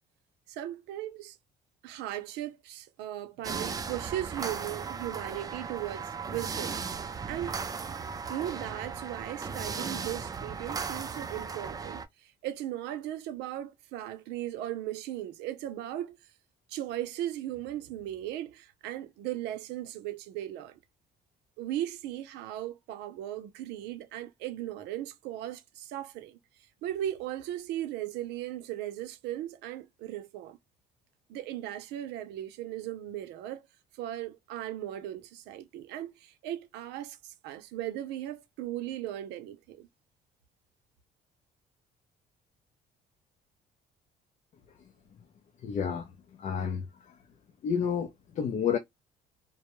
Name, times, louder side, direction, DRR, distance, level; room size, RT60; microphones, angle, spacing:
voice 1, 0.5-1.4 1.8-7.6 8.3-16.2 16.7-20.8 21.6-26.4 26.8-30.6 31.3-33.6 33.9-39.9, right 13 dB, 90° right, 0.5 m, -37 dB
sound 1, 3.4-12.1, right 5 dB, 20° right, 0.3 m, -36 dB
voice 2, 45.6-46.1 46.4-46.9 47.6-48.8, left 7 dB, 45° left, 0.5 m, -30 dB
2.2 x 2.0 x 3.0 m
cardioid pair, 110°, 17 cm